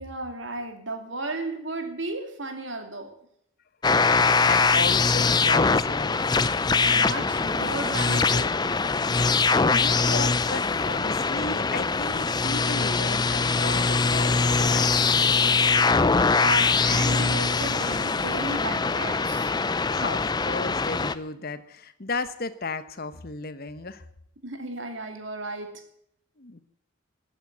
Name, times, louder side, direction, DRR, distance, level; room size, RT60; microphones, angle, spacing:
voice 1, 0.0-3.1 6.7-8.5 16.4-19.5 24.4-25.8, right 2 dB, 60° right, 6 dB, 2.7 m, -34 dB
sound 1, 3.8-21.2, left 4 dB, 20° left, 0.5 m, -22 dB
voice 2, 3.9-6.2 9.3-15.6 16.2-16.3 19.9-24.0 26.4-26.6, left 3 dB, 45° left, 13 dB, 1.1 m, -34 dB
14.0 x 9.1 x 9.6 m, 0.71 s
head